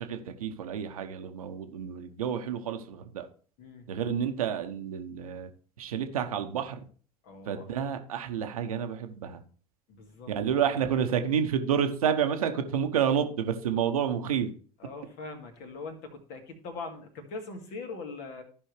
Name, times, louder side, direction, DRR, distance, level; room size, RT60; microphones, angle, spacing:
voice 1, 0.0-3.3 3.9-5.5 5.8-6.8 7.5-9.4 10.3-14.5, right 8 dB, 70° right, 7 dB, 1.0 m, -29 dB
voice 2, 3.6-3.9 7.2-7.7 9.9-11.0 14.8-18.4, left 3 dB, 55° left, 5 dB, 2.1 m, -42 dB
14.5 x 5.4 x 3.2 m, 0.42 s
figure-of-eight pair, 70°, 19 cm